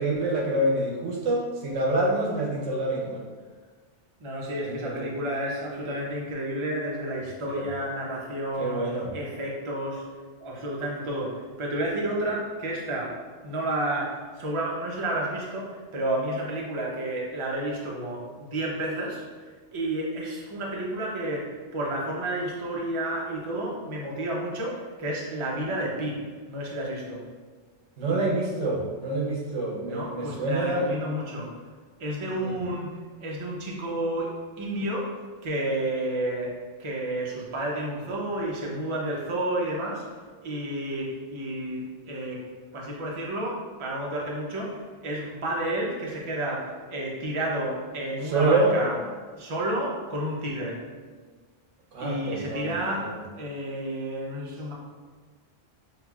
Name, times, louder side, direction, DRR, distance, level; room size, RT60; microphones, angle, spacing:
voice 1, 0.0-3.2 4.6-5.1 7.4-7.7 8.6-9.2 28.0-30.9 32.4-32.6 48.2-48.8 51.9-53.2, right 2 dB, 80° right, -1 dB, 1.1 m, -27 dB
voice 2, 4.2-8.8 9.1-10.0 10.4-13.1 13.4-19.2 19.7-26.2 26.5-27.2 29.8-31.5 32.0-35.1 35.4-36.5 36.8-40.0 40.4-42.4 42.7-48.9 49.3-50.8 52.0-54.7, right 1 dB, 35° right, -3 dB, 0.6 m, -31 dB
5.7 x 2.9 x 2.3 m, 1.5 s
omnidirectional pair, 1.3 m